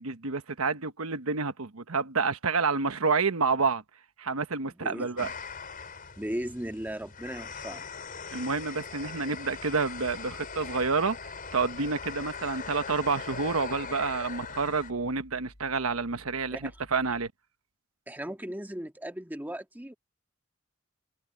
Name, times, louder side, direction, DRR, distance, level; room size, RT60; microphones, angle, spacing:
voice 1, 0.0-3.8 4.2-5.3 8.3-17.3, right 4 dB, 85° right, 1.2 m, -29 dB
voice 2, 4.7-5.3 6.2-7.8 16.5-16.7 18.1-19.9, right 1 dB, 10° right, 1.7 m, -37 dB
sound 1, 5.2-14.9, left 5 dB, 40° left, 4.6 m, -41 dB
sound 2, 9.5-17.3, equal, 80° left, 5.5 m, -55 dB
head